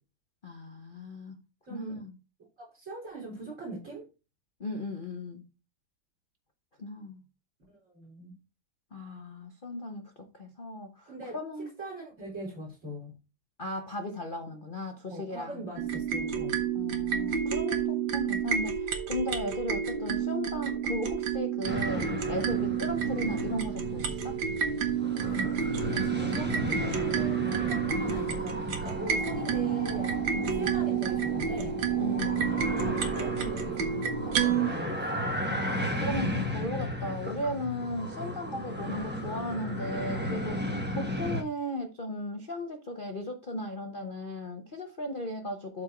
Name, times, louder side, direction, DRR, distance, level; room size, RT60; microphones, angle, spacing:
voice 1, 0.4-1.4 1.7-2.1 4.6-5.4 6.8-7.2 8.9-11.7 13.6-15.6 16.7-24.4 26.9-27.1 30.3-30.8 32.0-32.5 35.5-45.8, left 1 dB, 45° left, 0.6 m, -36 dB
voice 2, 1.7-2.0 2.6-4.0 7.8-8.3 11.0-11.4 11.8-13.1 15.1-16.6 25.2-31.7 32.8-35.2, right 2 dB, 35° right, 4.9 m, -41 dB
sound 1, 15.8-34.7, right 8 dB, 60° right, 1.7 m, -30 dB
sound 2, 21.6-41.4, left 1 dB, 10° right, 0.6 m, -35 dB
12.5 x 4.6 x 3.1 m
omnidirectional pair, 2.4 m